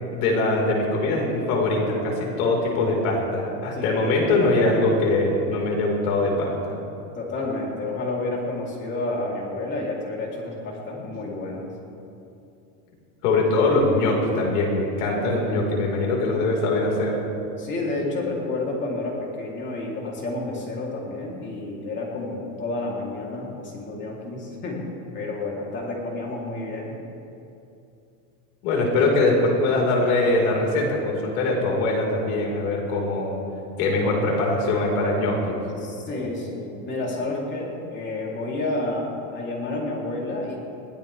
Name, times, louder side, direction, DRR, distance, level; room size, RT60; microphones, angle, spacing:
voice 1, 0.1-6.7 13.2-17.2 28.6-33.4 33.8-35.6, left 2 dB, 80° left, -1 dB, 4.8 m, -22 dB
voice 2, 3.7-4.6 7.1-11.7 15.1-15.3 17.6-24.9 25.1-27.0 35.8-40.6, left 2 dB, 25° left, -3 dB, 3.4 m, -30 dB
22.0 x 16.5 x 3.5 m, 2.7 s
supercardioid pair, 165°, 42 cm